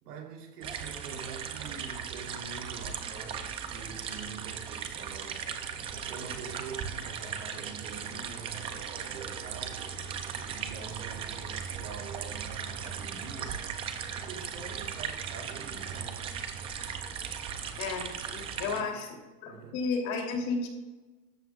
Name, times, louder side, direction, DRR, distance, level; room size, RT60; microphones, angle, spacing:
voice 1, 0.0-5.5 5.9-9.9 10.3-13.7 14.0-16.2 18.6-19.1 19.5-19.8, right 5 dB, 80° right, 3.2 m, -45 dB
sound 1, 0.6-18.8, right 7 dB, 15° right, 0.4 m, -38 dB
voice 2, 17.8-19.1 19.4-20.7, left 4 dB, 40° left, 3.1 m, -33 dB
17.5 x 13.5 x 2.4 m
supercardioid pair, 145°, 46 cm